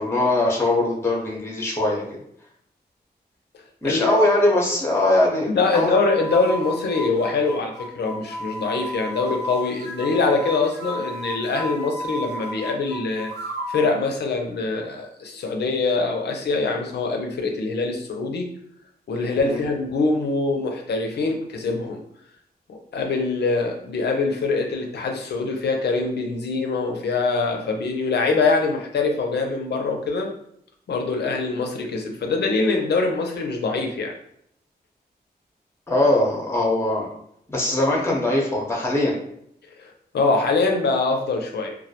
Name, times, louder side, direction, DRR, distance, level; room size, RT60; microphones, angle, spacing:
voice 1, 0.0-2.0 3.8-5.9 19.4-19.6 35.9-37.1 37.5-39.1, left 1 dB, 15° left, -2 dB, 0.7 m, -21 dB
voice 2, 3.8-4.2 5.5-13.3 13.7-18.5 19.1-22.0 22.7-30.3 30.9-34.1 39.8-41.8, left 3 dB, 80° left, 2 dB, 0.5 m, -24 dB
sound 1, 5.7-13.9, equal, 80° right, 0.6 m, -33 dB
2.2 x 2.1 x 2.7 m, 0.72 s
cardioid pair, 60°, 17 cm